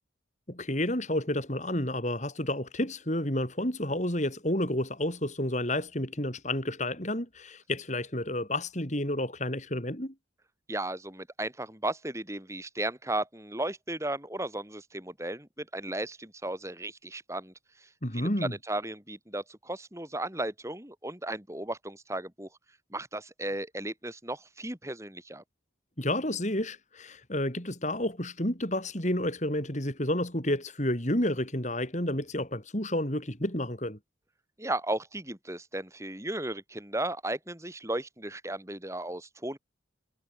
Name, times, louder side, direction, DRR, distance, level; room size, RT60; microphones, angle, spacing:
voice 1, 0.5-10.1 18.0-18.5 26.0-34.0, left 1 dB, 40° left, 5.4 m, -30 dB
voice 2, 10.7-17.5 18.1-18.3 18.7-22.5 22.9-25.4 34.6-39.6, right 1 dB, 15° right, 3.7 m, -35 dB
head